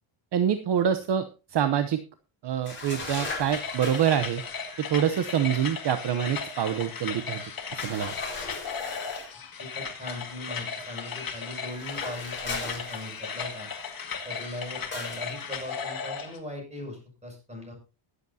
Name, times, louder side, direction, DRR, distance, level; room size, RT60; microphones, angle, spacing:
voice 1, 0.3-2.0 2.4-4.4 4.8-8.1, right 9 dB, 55° right, 9 dB, 0.9 m, -26 dB
sound 1, 2.7-4.3 7.8-9.4 11.7-13.4 14.9-15.3, left 3 dB, 20° left, 5.1 m, -37 dB
sound 2, 3.5-16.4, left 6 dB, 45° left, 2.0 m, -36 dB
voice 2, 9.6-13.7 14.2-17.7, left 1 dB, 15° right, 1 dB, 6.5 m, -39 dB
21.5 x 8.1 x 2.8 m, 0.31 s
cardioid pair, 130°, 50 cm